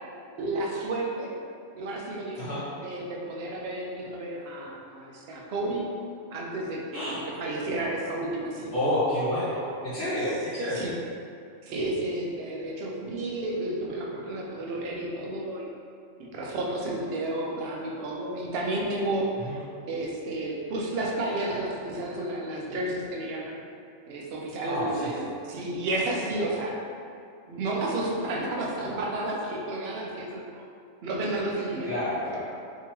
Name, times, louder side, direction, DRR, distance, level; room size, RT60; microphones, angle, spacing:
voice 1, 0.4-1.3 1.7-5.9 6.3-8.7 10.7-10.9 11.6-15.7 16.2-19.3 19.8-23.6 24.1-26.7 27.5-30.6 31.0-31.9, right 2 dB, 60° right, -2 dB, 0.7 m, -31 dB
voice 2, 8.7-10.9 19.4-19.6 24.6-25.1 31.8-32.4, left 1 dB, 40° left, -13 dB, 1.7 m, -29 dB
3.5 x 2.9 x 2.8 m, 2.4 s
omnidirectional pair, 1.3 m